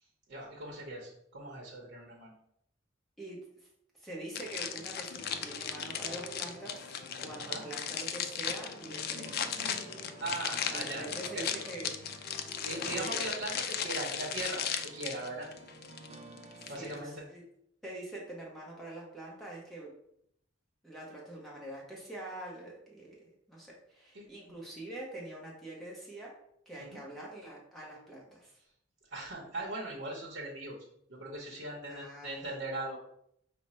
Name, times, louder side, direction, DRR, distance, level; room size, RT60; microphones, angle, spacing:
voice 1, 0.3-2.3 7.5-7.6 10.2-11.0 11.3-11.5 12.6-15.5 16.7-17.1 24.1-24.2 26.9-27.0 29.1-30.7 31.1-33.0, right 2 dB, 75° right, -2 dB, 0.8 m, -39 dB
voice 2, 3.2-3.7 3.9-9.5 10.7-11.9 12.4-12.7 12.9-13.3 16.6-17.4 17.8-19.9 20.8-26.3 26.7-28.6 31.9-32.5, right 1 dB, ahead, -4 dB, 0.7 m, -45 dB
sound 1, 4.3-17.0, left 8 dB, 55° left, 0.4 m, -37 dB
sound 2, 5.2-17.0, right 3 dB, 35° right, 0.4 m, -52 dB
4.9 x 2.1 x 4.1 m, 0.72 s
head